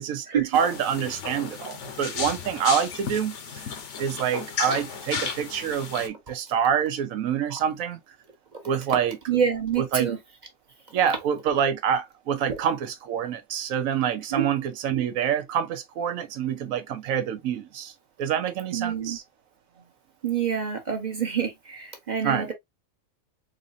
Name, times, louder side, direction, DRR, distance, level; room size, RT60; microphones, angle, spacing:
voice 1, 0.0-3.6 4.0-8.0 8.6-9.2 9.8-10.1 10.9-17.9 18.2-19.2 22.2-22.5, right 8 dB, 75° right, 1.0 m, -26 dB
sound 1, 0.5-6.1, left 6 dB, 60° left, 1.0 m, -34 dB
voice 2, 9.3-10.2 14.3-14.5 18.7-19.2 20.2-22.5, right 7 dB, 35° right, 0.9 m, -27 dB
4.0 x 2.6 x 2.5 m
omnidirectional pair, 1.5 m